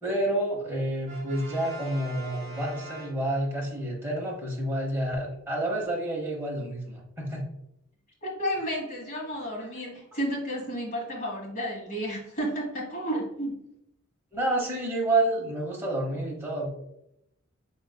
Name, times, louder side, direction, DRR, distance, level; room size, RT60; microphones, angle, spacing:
voice 1, 0.0-7.5 14.3-16.7, right 1 dB, 10° right, -3 dB, 0.9 m, -29 dB
Brass instrument, 1.1-3.7, right 2 dB, 40° right, 1.6 m, -44 dB
voice 2, 8.2-13.6, equal, 40° left, -2 dB, 1.3 m, -32 dB
4.8 x 3.8 x 2.2 m, 0.80 s
head